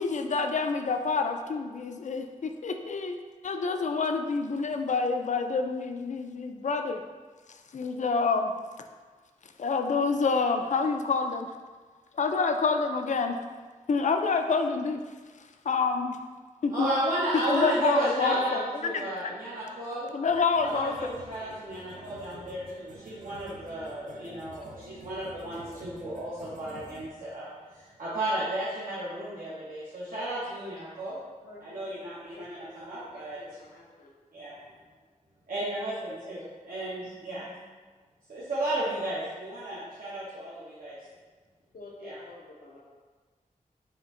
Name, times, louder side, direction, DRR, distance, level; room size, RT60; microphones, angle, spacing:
voice 1, 0.0-7.0 7.7-8.5 9.6-11.5 12.1-13.4 13.9-15.0 15.7-16.2 16.6-16.9 17.3-19.0 20.1-21.1, left 4 dB, 60° left, 6 dB, 0.4 m, -27 dB
voice 2, 16.7-20.1 20.6-31.2 31.6-33.4 34.3-34.5 35.5-37.4 38.3-41.0 42.0-42.2, right 1 dB, 85° right, -10 dB, 0.9 m, -33 dB
sound 1, 20.3-27.1, right 3 dB, 65° right, 0.5 m, -49 dB
voice 3, 21.9-22.5 24.0-24.4 25.1-26.1 31.4-34.1 34.5-34.7 41.7-42.8, left 2 dB, 85° left, -2 dB, 0.7 m, -50 dB
4.3 x 2.5 x 3.7 m, 1.4 s
cardioid pair, 60°, 14 cm